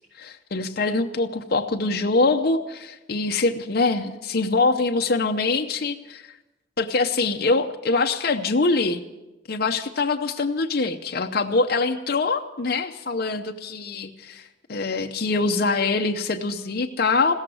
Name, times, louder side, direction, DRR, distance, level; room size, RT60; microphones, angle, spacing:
voice 1, 0.2-6.3 6.8-9.0 9.5-17.3, left 3 dB, 55° left, 4 dB, 0.7 m, -24 dB
16.0 x 14.0 x 6.2 m, 1.1 s
head